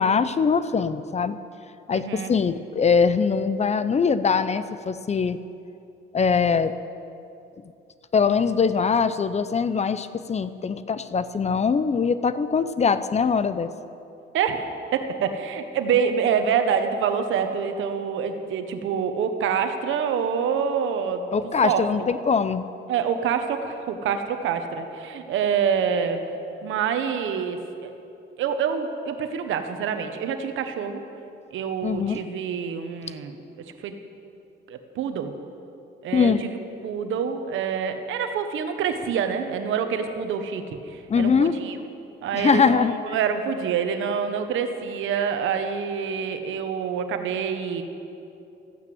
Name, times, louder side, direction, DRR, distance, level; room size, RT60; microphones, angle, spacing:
voice 1, 0.0-1.4 1.9-5.4 6.1-6.7 8.1-13.7 21.3-22.7 31.8-32.2 36.1-36.4 41.1-41.6 42.3-42.9, left 5 dB, 35° left, 13 dB, 0.6 m, -22 dB
voice 2, 1.9-2.3 14.3-21.3 21.6-21.9 22.9-26.2 26.6-27.9 28.4-31.0 31.5-33.3 33.8-34.0 34.7-35.3 36.0-36.6 36.8-41.7 42.2-47.8, right 7 dB, 80° right, 7 dB, 1.2 m, -26 dB
14.5 x 9.6 x 7.8 m, 2.7 s
cardioid pair, 90°, 20 cm